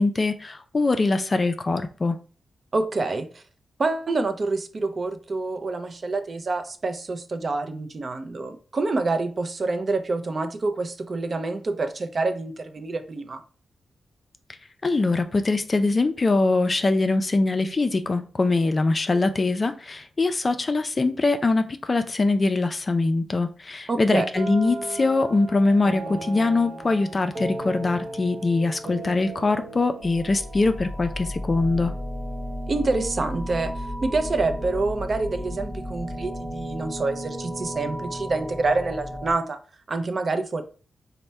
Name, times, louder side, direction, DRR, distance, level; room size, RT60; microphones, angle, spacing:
voice 1, 0.0-2.1 14.8-31.9, left 3 dB, 35° left, 9 dB, 0.4 m, -23 dB
voice 2, 2.7-3.4 3.8-13.4 23.9-24.3 32.7-39.6 39.9-40.6, right 3 dB, 45° right, 8 dB, 0.5 m, -27 dB
sound 1, 24.3-32.1, right 2 dB, 65° right, 1.0 m, -37 dB
sound 2, 30.0-39.3, equal, 10° left, 0.9 m, -34 dB
4.1 x 2.1 x 3.3 m, 0.39 s
cardioid pair, 85°, 0 cm